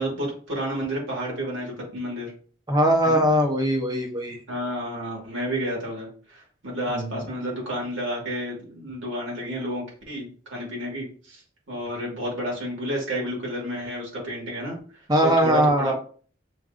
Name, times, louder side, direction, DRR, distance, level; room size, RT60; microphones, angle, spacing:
voice 1, 0.0-2.3 3.0-3.2 4.5-16.0, right 1 dB, 70° right, -3 dB, 1.9 m, -31 dB
voice 2, 2.7-4.4 6.9-7.1 15.1-15.9, equal, 20° right, 3 dB, 0.8 m, -21 dB
6.0 x 2.6 x 2.5 m, 0.43 s
head